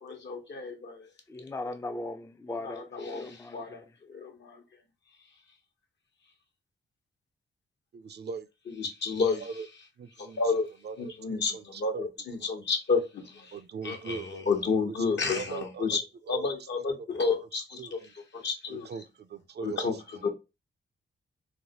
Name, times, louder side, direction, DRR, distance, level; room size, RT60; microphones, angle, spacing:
voice 1, 0.0-1.1 2.5-4.6 8.6-9.9 10.2-10.7 11.0-19.1 19.6-20.3, left 4 dB, 65° left, 1.0 m, -31 dB
voice 2, 1.3-3.8, left 2 dB, 15° left, 0.4 m, -38 dB
voice 3, 7.9-8.5 9.4-9.7 10.0-10.4 10.8-12.0 12.4-12.5 13.5-15.1 15.4-16.0 16.3-16.5 17.0-17.1 17.8-18.1 18.7-19.9 20.1-20.3, right 5 dB, 55° right, 0.5 m, -40 dB
3.2 x 2.1 x 2.8 m
supercardioid pair, 50°, 20 cm